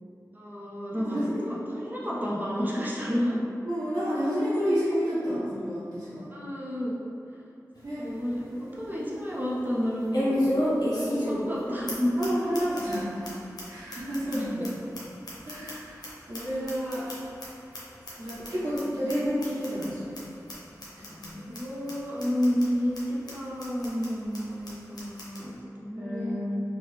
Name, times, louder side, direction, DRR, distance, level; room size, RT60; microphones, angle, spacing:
voice 1, 0.3-1.2 1.4-3.4 5.3-5.4 6.3-7.0 7.3-7.4 8.0-12.5 14.4-15.0 21.3-26.3, equal, 30° right, -6 dB, 0.7 m, -31 dB
voice 2, 1.1-1.4 3.6-6.3 7.8-8.0 12.2-13.4 13.6-14.7 15.4-17.1 18.1-20.3 21.1-21.4 25.9-26.6, equal, 85° right, -15 dB, 1.1 m, -30 dB
sound 1, 7.8-7.9 8.3-8.4 10.1-11.6 11.9-12.0 12.2-12.3 12.5-13.0 13.2-13.3 13.6-13.7 13.9-16.1 16.3-17.4 17.7-17.8 18.1-18.5 18.8-18.9 19.1-19.2 19.4-19.9 20.1-20.2 20.5-20.6 20.8-21.3 21.5-21.6 21.9-22.0 22.2-22.6 22.9-23.0 23.3-23.4 23.6-24.1 24.3-24.4 24.6-24.7 25.0-25.4, left 1 dB, 85° left, 0.7 m, -30 dB
3.2 x 2.3 x 3.2 m, 2.6 s
wide cardioid pair, 55°, 7 cm